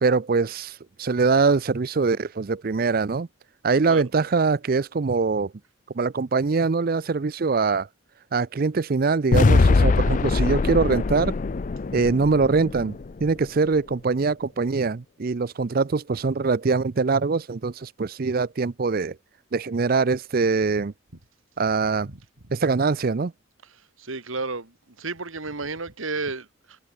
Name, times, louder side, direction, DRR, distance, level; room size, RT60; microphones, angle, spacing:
voice 1, 0.0-3.3 3.6-5.5 6.0-7.9 8.3-11.3 11.9-12.9 13.2-19.1 19.5-20.9 21.6-22.1 22.5-23.3, right 4 dB, 45° right, 0.5 m, -23 dB
sound 1, 9.3-13.5, left 3 dB, 40° left, 0.4 m, -22 dB
voice 2, 23.6-26.8, right 3 dB, 85° right, 2.4 m, -33 dB
head